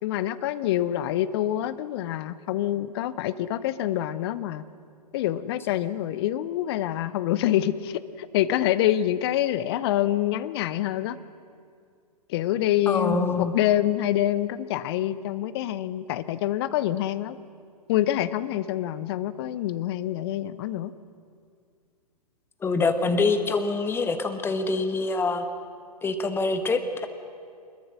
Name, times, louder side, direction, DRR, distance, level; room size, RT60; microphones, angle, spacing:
voice 1, 0.0-4.6 5.1-11.2 12.3-17.4 17.9-20.9, left 12 dB, 40° left, 15 dB, 0.8 m, -26 dB
voice 2, 12.9-13.5 22.6-25.4 26.0-27.1, left 3 dB, 10° left, 8 dB, 1.3 m, -25 dB
24.5 x 21.5 x 6.4 m, 2.3 s
figure-of-eight pair, 110°, 20 cm